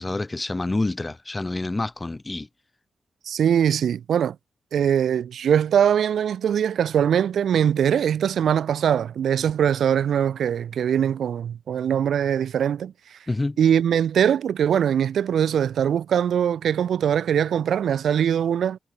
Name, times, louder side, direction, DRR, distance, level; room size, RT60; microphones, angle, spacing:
voice 1, 0.0-2.5 13.3-13.6, left 2 dB, 20° left, 3.0 m, -27 dB
voice 2, 3.3-4.4 4.7-13.2 13.6-18.8, right 9 dB, 85° right, 1.7 m, -22 dB
wide cardioid pair, 140°, 0 cm